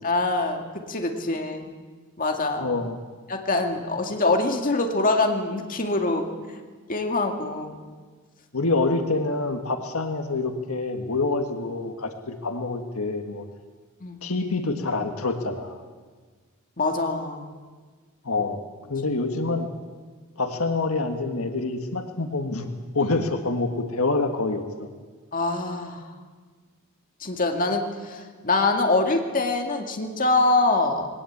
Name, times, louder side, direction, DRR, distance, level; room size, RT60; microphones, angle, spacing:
voice 1, 0.0-1.7 2.2-2.7 3.3-6.3 6.9-7.8 14.0-14.2 16.8-17.5 25.3-26.0 27.2-31.1, left 2 dB, 40° left, 3 dB, 2.0 m, -24 dB
voice 2, 2.6-3.0 8.5-13.5 14.2-15.8 18.3-18.6 18.9-19.7 20.4-24.9, left 3 dB, 80° left, 6 dB, 1.7 m, -26 dB
20.0 x 18.0 x 8.6 m, 1.5 s
head